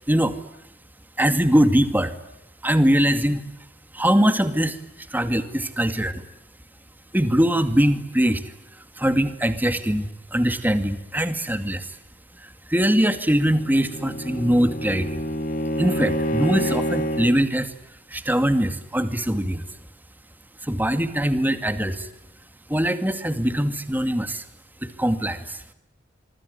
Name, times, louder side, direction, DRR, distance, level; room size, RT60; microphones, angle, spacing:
voice 1, 1.2-2.1 2.6-3.5 3.9-4.8 5.1-6.2 7.1-8.4 9.0-12.0 12.4-15.2 15.8-17.7 18.1-19.6 20.6-22.1 22.7-24.4 24.8-25.6, equal, 10° right, 9 dB, 2.3 m, -22 dB
Bowed string instrument, 13.5-17.4, equal, 50° left, 2.5 m, -27 dB
25.5 x 24.5 x 9.5 m, 0.88 s
head